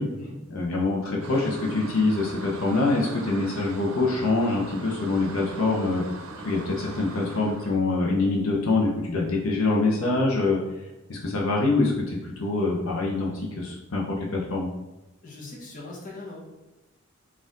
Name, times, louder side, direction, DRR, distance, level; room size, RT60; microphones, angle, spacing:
voice 1, 0.5-6.0 6.4-10.6 11.1-14.7, left 3 dB, 85° left, -2 dB, 0.7 m, -25 dB
sound 1, 1.2-7.8, right 3 dB, 90° right, 0.5 m, -40 dB
voice 2, 15.2-16.4, left 2 dB, 40° left, -3 dB, 0.9 m, -40 dB
4.2 x 2.4 x 3.6 m, 1.0 s
head